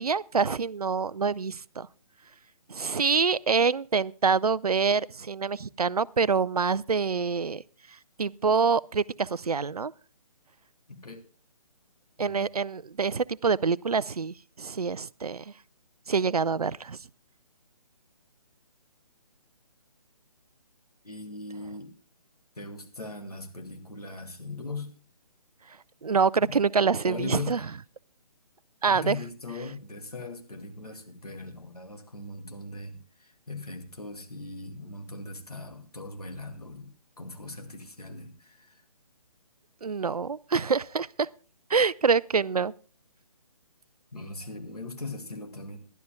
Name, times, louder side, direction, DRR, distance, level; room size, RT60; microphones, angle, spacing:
voice 1, 0.0-1.9 2.7-7.6 8.2-9.9 12.2-15.4 16.1-17.0 26.0-27.6 28.8-29.2 39.8-41.3 41.7-42.7, right 5 dB, 75° right, 0.5 m, -26 dB
voice 2, 10.9-11.2 12.2-12.4 21.0-21.9 22.6-25.0 26.4-26.6 26.9-27.7 28.9-38.8 44.1-45.9, left 2 dB, 80° left, 2.4 m, -39 dB
21.5 x 12.0 x 2.3 m
figure-of-eight pair, 140°, 19 cm